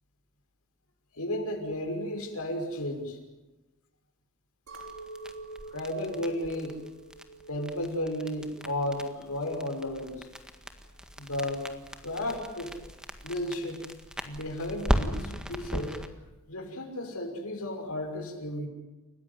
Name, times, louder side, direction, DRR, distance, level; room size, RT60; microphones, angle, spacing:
voice 1, 1.1-3.2 5.7-6.8 7.5-10.3 11.2-11.7 12.0-12.7 13.2-13.8 14.2-16.0 16.5-18.7, left 1 dB, 90° left, 3 dB, 5.9 m, -33 dB
sound 1, 4.7-16.1, equal, 5° right, 1.7 m, -37 dB
Chink clink, 4.7-9.1 9.4-10.0, right 3 dB, 80° right, 5.1 m, -47 dB
29.5 x 15.5 x 9.7 m, 1.0 s
head